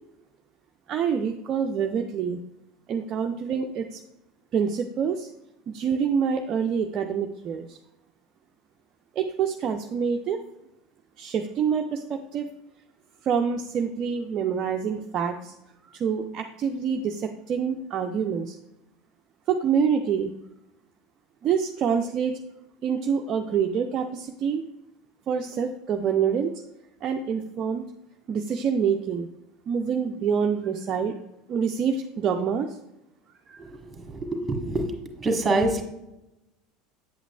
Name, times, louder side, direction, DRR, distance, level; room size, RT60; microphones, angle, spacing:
voice 1, 0.9-2.4 2.9-4.0 4.5-5.3 5.7-7.8 9.2-10.4 11.2-12.5 13.2-15.5 15.8-18.6 19.5-20.3 21.4-22.4 22.8-24.6 25.3-26.6 27.0-27.9 28.3-29.3 29.7-31.2 31.5-32.8 33.5-33.6, right 7 dB, 40° right, 4 dB, 0.4 m, -26 dB
voice 2, 33.6-35.8, right 2 dB, 20° right, 4 dB, 1.3 m, -26 dB
8.0 x 7.8 x 2.3 m, 0.90 s
figure-of-eight pair, 75°, 0 cm